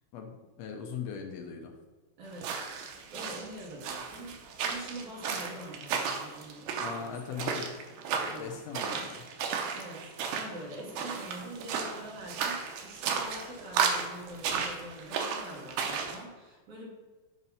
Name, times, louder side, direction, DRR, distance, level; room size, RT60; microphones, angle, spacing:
voice 1, 0.1-1.7 6.8-7.7 8.3-9.2, left 6 dB, 85° left, 2 dB, 1.4 m, -40 dB
voice 2, 2.2-2.6 3.1-7.6 8.2-8.6 9.7-16.9, right 1 dB, 70° right, -2 dB, 2.4 m, -45 dB
sound 1, 2.3-16.2, right 6 dB, 90° right, 2.2 m, -34 dB
7.1 x 2.7 x 5.3 m, 1.3 s
omnidirectional pair, 3.5 m